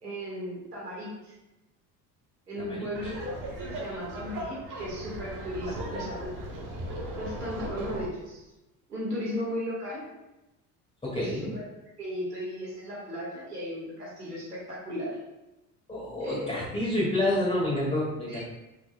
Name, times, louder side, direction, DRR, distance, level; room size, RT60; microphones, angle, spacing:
voice 1, 0.0-1.3 2.5-6.3 7.2-8.5 8.9-10.0 11.1-11.6 12.0-15.2 16.2-16.6 18.3-18.4, equal, 85° right, -6 dB, 1.8 m, -36 dB
voice 2, 2.6-2.9 5.8-6.0 11.0-11.5 15.9-18.4, left 1 dB, 15° left, -7 dB, 2.1 m, -29 dB
Laughter, 2.9-8.0, right 1 dB, 45° right, 1.8 m, -38 dB
7.2 x 5.9 x 2.3 m, 0.98 s
figure-of-eight pair, 55°, 46 cm